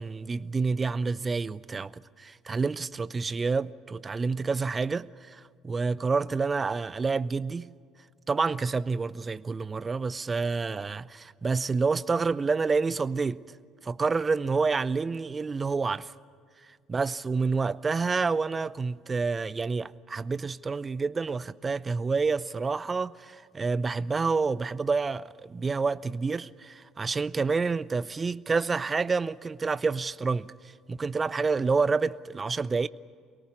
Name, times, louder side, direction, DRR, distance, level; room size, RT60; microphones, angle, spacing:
voice 1, 0.0-7.7 8.3-13.4 13.8-16.1 16.9-30.5 30.9-32.9, right 4 dB, 25° right, 0.5 m, -28 dB
23.5 x 18.5 x 8.7 m
figure-of-eight pair, 55°, 0 cm